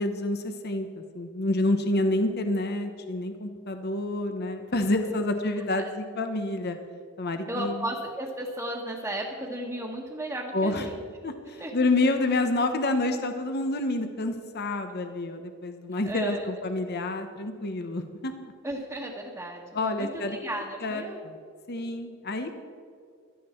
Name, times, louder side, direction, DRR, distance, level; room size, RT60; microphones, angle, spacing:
voice 1, 0.0-6.8 7.2-7.8 10.5-10.9 11.2-18.3 19.7-20.4 20.8-21.3 21.7-22.5, left 2 dB, 55° left, 7 dB, 1.0 m, -28 dB
voice 2, 7.5-11.0 11.6-11.7 16.1-16.5 18.6-21.2, right 1 dB, 10° right, -4 dB, 1.5 m, -34 dB
16.0 x 12.5 x 4.5 m, 2.2 s
head